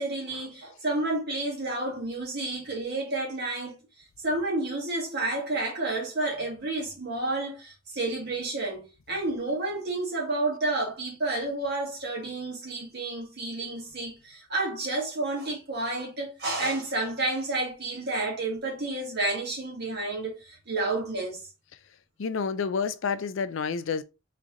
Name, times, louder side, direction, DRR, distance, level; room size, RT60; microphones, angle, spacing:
voice 1, 0.0-3.8 4.2-21.4, right 2 dB, 55° right, 2.0 m, -30 dB
voice 2, 22.2-24.0, left 5 dB, 65° left, 0.4 m, -29 dB
3.8 x 3.2 x 3.6 m
head